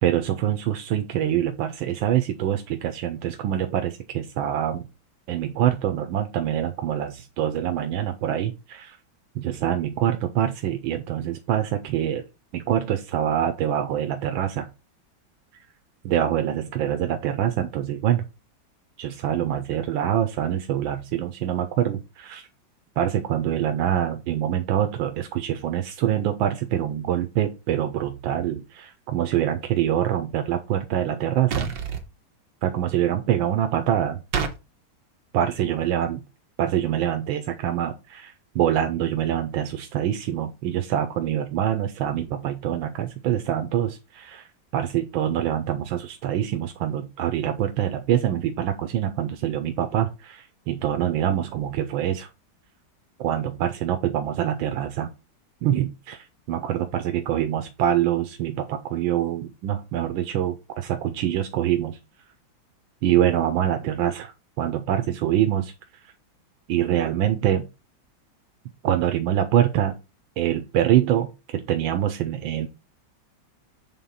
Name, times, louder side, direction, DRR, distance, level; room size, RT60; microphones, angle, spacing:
voice 1, 0.0-4.9 5.3-9.0 9.3-12.3 12.5-14.7 16.0-18.2 19.0-22.5 23.0-31.7 32.6-34.2 35.3-36.2 36.6-44.5 44.7-52.3 53.2-55.1 55.6-62.0 63.0-65.7 66.7-67.7 68.8-70.0 70.4-72.7, right 11 dB, 85° right, 7 dB, 1.5 m, -25 dB
sound 1, 31.5-32.0 34.3-34.6, right 6 dB, 65° right, 1.7 m, -26 dB
7.7 x 3.7 x 5.5 m, 0.27 s
omnidirectional pair, 2.1 m